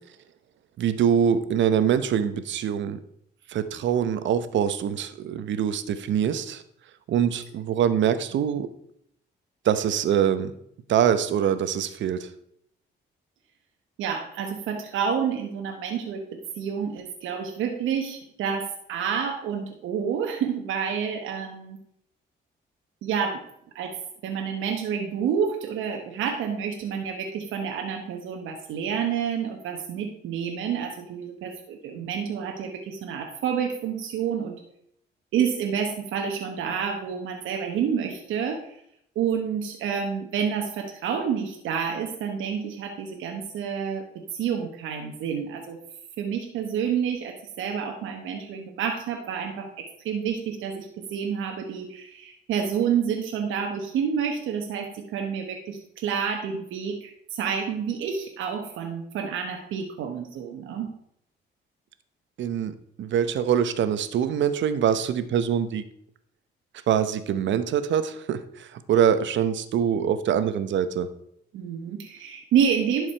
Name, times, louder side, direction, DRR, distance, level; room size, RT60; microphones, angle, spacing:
voice 1, 0.8-3.0 3.5-6.6 7.1-8.7 9.6-10.5 10.9-12.3 62.4-65.8 66.9-71.1, right 8 dB, 70° right, 12 dB, 0.8 m, -24 dB
voice 2, 14.0-16.2 16.6-21.8 23.0-23.4 23.7-23.9 24.2-34.6 35.3-38.8 39.1-44.0 44.3-45.8 46.2-60.9 71.5-73.1, right 7 dB, 85° right, 3 dB, 1.1 m, -29 dB
11.5 x 4.9 x 4.5 m, 0.72 s
cardioid pair, 90°, 20 cm